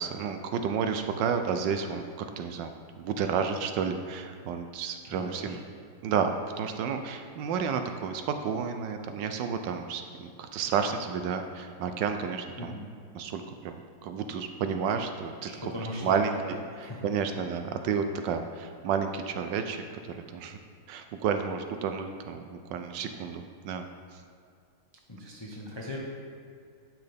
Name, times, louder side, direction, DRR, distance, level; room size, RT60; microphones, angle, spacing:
voice 1, 0.0-5.6 6.0-6.3 6.6-12.7 13.1-13.7 14.0-15.5 16.0-16.6 17.0-20.6 20.9-24.2, right 6 dB, 75° right, 6 dB, 1.1 m, -31 dB
voice 2, 5.1-5.6 12.6-12.9 15.4-17.0 25.1-26.0, left 1 dB, 40° left, -3 dB, 0.4 m, -38 dB
10.5 x 6.0 x 3.5 m, 2.3 s
omnidirectional pair, 2.1 m